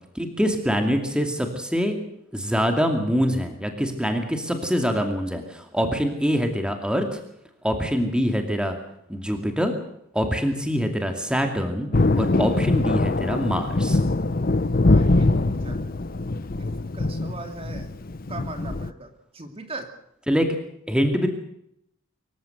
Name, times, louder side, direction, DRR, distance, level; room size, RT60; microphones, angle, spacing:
voice 1, 0.1-2.0 2.3-7.2 7.6-8.7 9.1-9.7 10.1-11.9 12.2-14.0 20.3-20.5 20.9-21.3, equal, 5° right, 5 dB, 2.4 m, -24 dB
Thunder, 11.9-18.9, left 2 dB, 40° left, 0.7 m, -23 dB
voice 2, 14.8-15.8 16.4-16.7 16.9-17.9 18.3-19.9, right 2 dB, 25° right, 6 dB, 2.5 m, -39 dB
25.0 x 15.5 x 7.9 m, 0.76 s
head